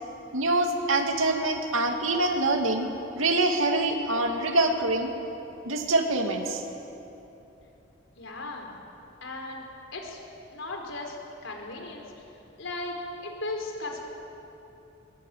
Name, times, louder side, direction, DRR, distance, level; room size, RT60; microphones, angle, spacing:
voice 1, 0.3-5.1 5.6-6.6, right 2 dB, 90° right, 4 dB, 2.6 m, -25 dB
voice 2, 8.2-8.7 9.2-9.6 9.9-10.2 10.5-11.2 11.4-12.0 12.6-14.0, left 2 dB, 70° left, 2 dB, 4.7 m, -36 dB
22.5 x 21.5 x 9.3 m, 2.9 s
head